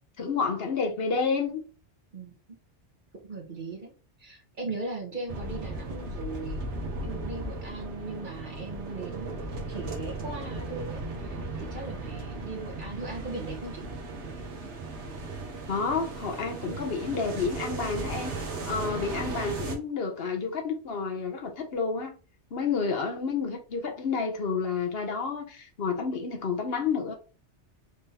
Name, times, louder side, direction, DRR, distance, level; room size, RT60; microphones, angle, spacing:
voice 1, 0.2-1.6 15.7-18.3 18.6-22.1 22.5-27.1, left 5 dB, 60° left, 1.0 m, -30 dB
voice 2, 3.2-3.9 4.2-6.6 7.0-9.4 9.7-13.8, right 3 dB, 45° right, 1.3 m, -38 dB
sound 1, 5.3-19.8, right 2 dB, 75° right, 1.4 m, -36 dB
4.8 x 3.5 x 2.9 m
omnidirectional pair, 1.2 m